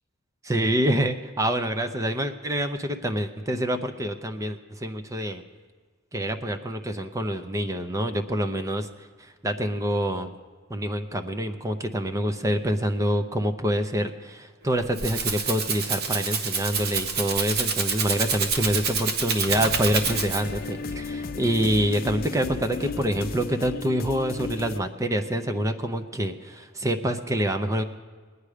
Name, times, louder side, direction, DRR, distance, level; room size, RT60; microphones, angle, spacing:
voice 1, 0.4-5.4 6.1-8.9 9.2-10.3 10.7-27.8, equal, 15° right, 7 dB, 0.6 m, -26 dB
Rattle (instrument), 14.7-20.6, right 5 dB, 50° right, 0.9 m, -27 dB
sound 1, 19.5-24.8, left 3 dB, 45° left, 0.5 m, -34 dB
20.5 x 9.5 x 5.0 m, 1.5 s
head